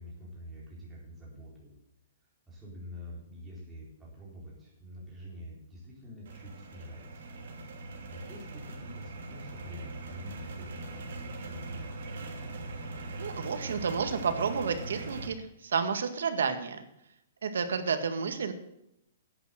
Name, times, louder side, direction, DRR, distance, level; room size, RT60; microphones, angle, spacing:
voice 1, 0.0-1.7 2.5-7.4 8.1-12.3, equal, 5° right, -6 dB, 4.2 m, -47 dB
sound 1, 6.3-15.3, right 2 dB, 65° right, 2.8 m, -41 dB
voice 2, 13.2-16.8 17.4-18.5, right 6 dB, 90° right, 8 dB, 1.8 m, -31 dB
11.0 x 8.5 x 7.7 m, 0.81 s
hypercardioid pair, 170°, 0 cm